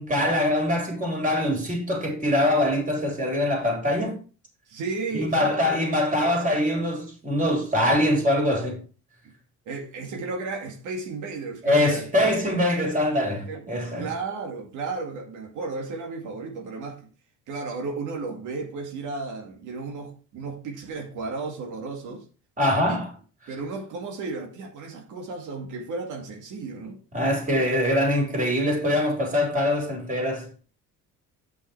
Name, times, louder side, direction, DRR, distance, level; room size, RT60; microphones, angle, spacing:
voice 1, 0.0-4.2 5.1-8.8 11.6-14.1 22.6-23.1 27.1-30.5, left 1 dB, 25° right, 4.0 m, -23 dB
voice 2, 4.7-5.7 9.2-9.3 9.7-12.1 13.4-17.0 17.5-22.3 22.9-23.0 23.5-27.0, right 3 dB, 75° right, 2.3 m, -34 dB
8.3 x 5.7 x 4.6 m
cardioid pair, 115°, 31 cm